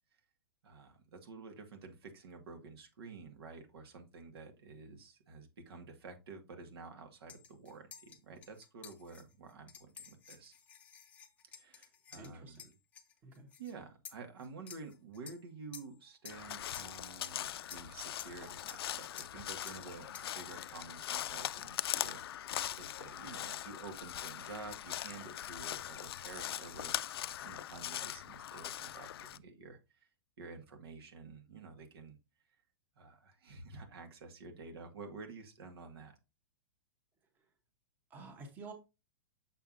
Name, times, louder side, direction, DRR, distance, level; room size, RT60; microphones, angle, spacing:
voice 1, 0.6-10.5 11.5-12.6 13.6-22.2 22.7-30.1 30.4-32.2 32.9-36.2, right 4 dB, 90° right, 5 dB, 1.8 m, -50 dB
sound 1, 7.3-13.7 14.0-15.4 15.7-16.0 16.2-16.5 16.7-17.4 17.7-17.9 18.2-18.4 18.7-18.9 19.2-19.3 19.7-19.9 20.1-20.3, left 8 dB, 10° left, 0.5 m, -52 dB
voice 2, 12.1-12.7 13.2-13.5 38.1-38.7, right 3 dB, 15° right, 4 dB, 0.9 m, -50 dB
Crow, 16.3-29.4, left 11 dB, 80° left, 0.4 m, -41 dB
6.7 x 5.6 x 2.6 m, 0.26 s
supercardioid pair, 175°, 13 cm